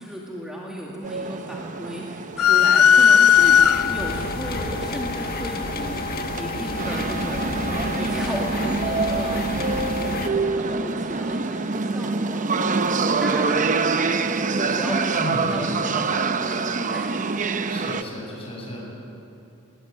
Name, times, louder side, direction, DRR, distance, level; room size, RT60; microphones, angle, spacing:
voice 1, 0.0-3.6 3.9-7.7 8.0-17.1, equal, 5° right, -4 dB, 2.1 m, -35 dB
sound 1, 1.0-18.0, right 4 dB, 35° right, 0.7 m, -26 dB
sound 2, 2.4-4.2, left 8 dB, 85° left, 0.5 m, -15 dB
sound 3, 3.3-10.3, left 2 dB, 45° left, 1.5 m, -30 dB
voice 2, 15.2-15.5 17.7-18.8, left 1 dB, 25° left, -2 dB, 7.3 m, -34 dB
20.0 x 20.0 x 9.6 m, 2.8 s
head